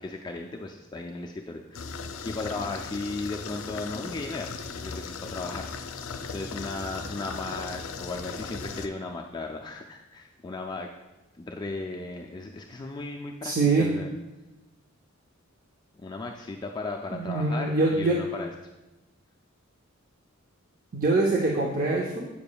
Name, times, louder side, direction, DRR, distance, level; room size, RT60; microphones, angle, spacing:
voice 1, 0.0-6.0 6.3-10.9 11.4-13.5 13.8-14.1 16.0-18.5, left 3 dB, 20° left, 1 dB, 0.4 m, -36 dB
sound 1, 1.7-8.9, left 5 dB, 75° left, 0.5 m, -38 dB
voice 2, 13.4-13.9 17.1-18.2 20.9-22.3, right 3 dB, 40° right, -1 dB, 0.6 m, -24 dB
8.3 x 6.9 x 2.3 m, 1.0 s
head